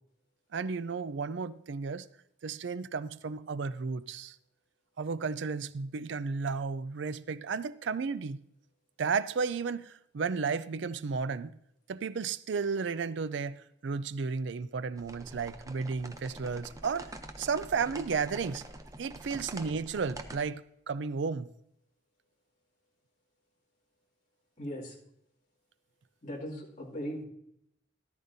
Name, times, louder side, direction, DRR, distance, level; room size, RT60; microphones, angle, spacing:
voice 1, 0.5-2.1 2.4-4.4 5.0-8.4 9.0-11.5 11.9-17.1 17.4-18.6 19.0-21.5, right 5 dB, 60° right, 0.4 m, -33 dB
sound 1, 15.0-20.4, right 2 dB, 15° right, 0.6 m, -46 dB
voice 2, 24.6-25.0 26.2-27.2, equal, 35° left, 2.3 m, -38 dB
14.0 x 12.0 x 2.7 m
head